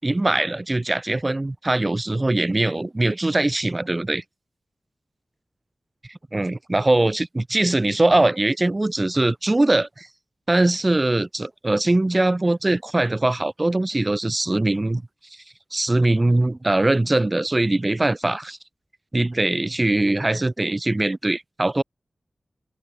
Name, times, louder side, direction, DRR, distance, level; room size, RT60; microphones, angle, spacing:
voice 1, 0.0-4.2 6.1-10.1 10.5-15.0 15.7-18.6 19.1-21.8, right 2 dB, 25° right, 5.7 m, -21 dB
open air
wide cardioid pair, 105°, 0 cm